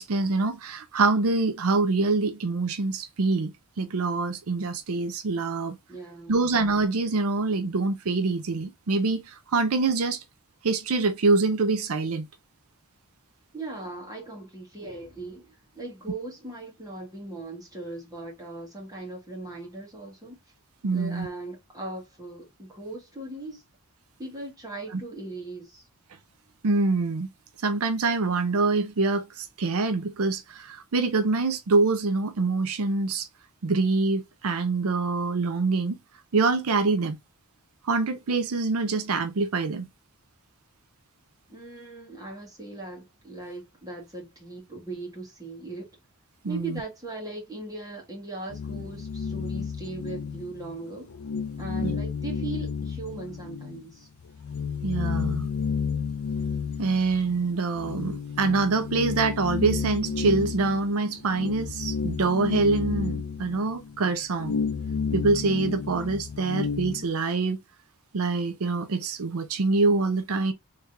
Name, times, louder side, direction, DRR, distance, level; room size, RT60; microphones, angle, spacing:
voice 1, 0.0-5.8 6.3-10.2 10.6-12.3 20.8-21.3 24.9-25.0 26.6-27.3 27.6-33.3 33.6-36.0 36.3-37.2 37.8-39.9 46.4-46.8 51.8-51.9 54.8-55.5 56.8-64.6 65.1-67.6 68.1-70.5, right 3 dB, 70° right, 0.5 m, -25 dB
voice 2, 5.9-6.4 13.5-20.4 20.9-23.6 24.2-25.8 41.5-45.9 46.5-51.1 51.6-54.1, right 2 dB, 15° right, 1.7 m, -39 dB
sound 1, 48.5-50.8 51.1-53.8 54.2-67.1, left 5 dB, 75° left, 0.5 m, -32 dB
3.6 x 3.3 x 2.6 m
head